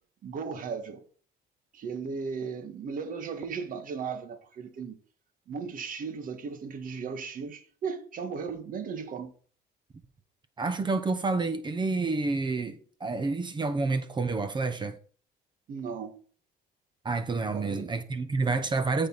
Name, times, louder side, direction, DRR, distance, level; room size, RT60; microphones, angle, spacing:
voice 1, 0.2-1.0 1.7-5.0 5.5-9.3 15.7-16.2 17.5-17.9, right 5 dB, 55° right, 1.7 m, -36 dB
voice 2, 10.6-15.0 17.0-19.1, right 3 dB, 25° right, 1.0 m, -29 dB
13.0 x 5.4 x 4.1 m
cardioid pair, 110°, 17 cm